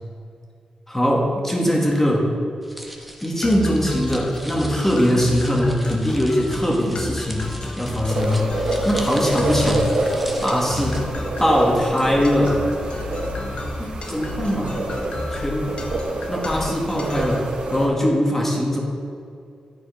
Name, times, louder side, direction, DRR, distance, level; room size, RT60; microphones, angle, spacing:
voice 1, 0.9-2.3 3.2-7.5 7.8-8.5 8.8-9.9 10.4-11.1 11.4-12.7 13.8-14.9 15.3-15.8 16.3-18.8, equal, 15° left, -1 dB, 1.9 m, -21 dB
sound 1, 2.6-11.0, equal, ahead, 1.1 m, -38 dB
sound 2, 3.4-17.5, left 2 dB, 50° left, 0.9 m, -32 dB
sound 3, 8.1-17.9, right 2 dB, 70° right, 1.4 m, -27 dB
11.0 x 4.3 x 5.0 m, 2.4 s
cardioid pair, 60°, 2 cm